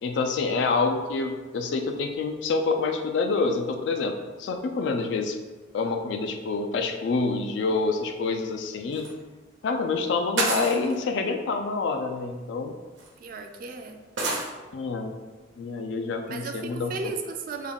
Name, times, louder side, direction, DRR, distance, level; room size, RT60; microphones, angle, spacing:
voice 1, 0.0-5.4 5.7-9.1 9.6-12.7 14.7-15.1 15.6-17.1, left 4 dB, 70° left, 5 dB, 0.3 m, -27 dB
sound 1, 8.9-9.1 10.4-11.0 12.2-12.3 13.0-13.1 14.2-14.5, right 2 dB, 75° right, 0.7 m, -28 dB
voice 2, 13.2-14.0 16.3-17.7, right 4 dB, 50° right, 5 dB, 0.3 m, -35 dB
3.6 x 2.2 x 3.5 m, 1.3 s
head